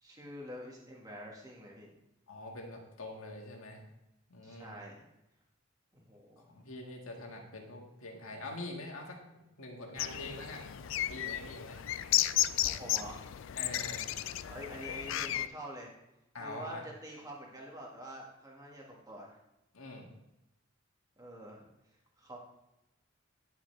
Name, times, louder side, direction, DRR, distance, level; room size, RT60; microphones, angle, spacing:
voice 1, 0.0-1.9 4.4-5.1 5.9-6.5 11.4-11.5 12.6-13.3 14.5-15.9 16.4-19.4 21.2-21.7 22.2-22.4, equal, 15° right, -2 dB, 1.6 m, -46 dB
voice 2, 2.3-3.8 4.3-4.8 6.5-10.7 11.1-11.8 13.6-14.1 16.3-16.8 19.7-20.1, left 2 dB, 85° left, 1 dB, 1.8 m, -44 dB
sound 1, 10.0-15.5, left 13 dB, 65° left, 0.3 m, -33 dB
10.5 x 7.1 x 3.3 m, 0.91 s
head